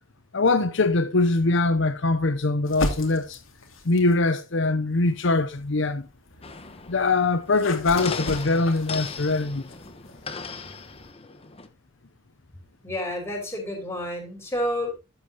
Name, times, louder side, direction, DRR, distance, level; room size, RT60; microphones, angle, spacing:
voice 1, 0.3-3.4 3.8-6.1 6.9-9.6, left 3 dB, 65° left, 0.8 m, -22 dB
sound 1, 2.6-4.2 4.9-11.1, left 2 dB, 85° left, 2.5 m, -37 dB
sound 2, 6.4-11.7, left 4 dB, 30° left, 1.1 m, -37 dB
voice 2, 12.8-15.0, left 1 dB, 15° left, 5.6 m, -30 dB
13.0 x 9.0 x 3.0 m
head